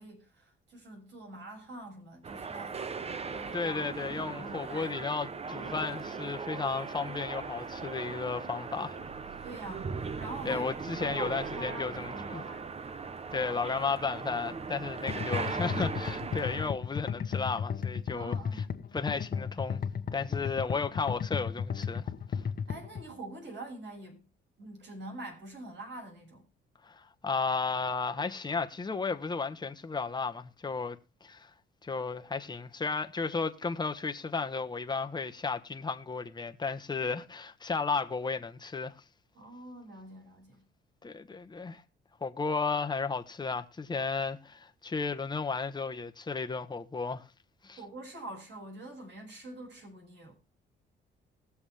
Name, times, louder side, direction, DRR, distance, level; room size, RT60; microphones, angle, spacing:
voice 1, 0.0-2.8 3.2-4.0 4.3-5.3 9.0-9.1 9.4-9.9 10.2-10.7 11.0-12.6 18.1-18.7 22.7-24.2 24.6-26.5 39.3-40.6 47.8-50.4, right 2 dB, 65° right, 6.5 m, -45 dB
sound 1, 2.2-16.7, right 5 dB, 30° right, 0.8 m, -39 dB
voice 2, 3.5-9.0 10.4-12.4 13.3-18.3 18.9-19.8 20.1-22.4 26.8-31.5 31.8-38.9 41.0-41.8 42.2-47.2 47.6-47.8, left 4 dB, 20° left, 1.2 m, -34 dB
sound 2, 15.1-23.0, left 7 dB, 45° left, 1.2 m, -34 dB
20.0 x 7.1 x 3.4 m
cardioid pair, 90°, 20 cm